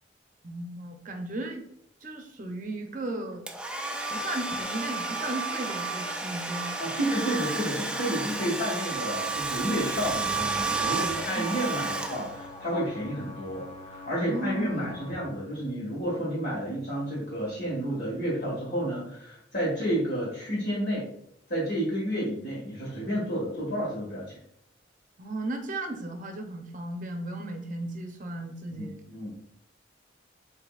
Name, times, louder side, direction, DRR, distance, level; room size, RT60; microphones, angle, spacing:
voice 1, 0.4-1.6 2.0-3.4 4.1-6.8 11.3-11.6 14.3-15.1 25.2-29.0, right 2 dB, 45° right, 4 dB, 0.7 m, -35 dB
Domestic sounds home sounds, 3.5-12.6, right 3 dB, 5° right, 0.3 m, -31 dB
voice 2, 6.8-21.1 21.5-24.4 28.7-29.3, equal, 55° left, -6 dB, 1.7 m, -31 dB
sound 1, 11.1-15.1, left 2 dB, 30° left, 0.7 m, -44 dB
7.6 x 2.8 x 2.4 m, 0.73 s
head